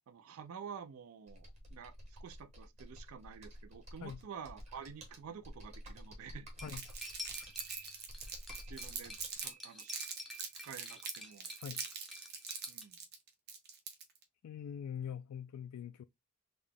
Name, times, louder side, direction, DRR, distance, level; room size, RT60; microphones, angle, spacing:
voice 1, 0.1-6.7 8.7-9.2 9.4-9.9 10.6-11.5 12.7-13.0, right 7 dB, 70° right, 0.4 m, -49 dB
Computer keyboard, 1.3-9.4, equal, 30° right, 1.0 m, -51 dB
Cutlery silverware, 6.6-12.9, left 1 dB, ahead, 0.5 m, -49 dB
Crumpling crinkling, 6.7-9.5 9.8-14.2, right 6 dB, 45° right, 0.8 m, -43 dB
voice 2, 14.4-16.0, left 8 dB, 80° left, 0.3 m, -43 dB
3.8 x 2.2 x 3.3 m
head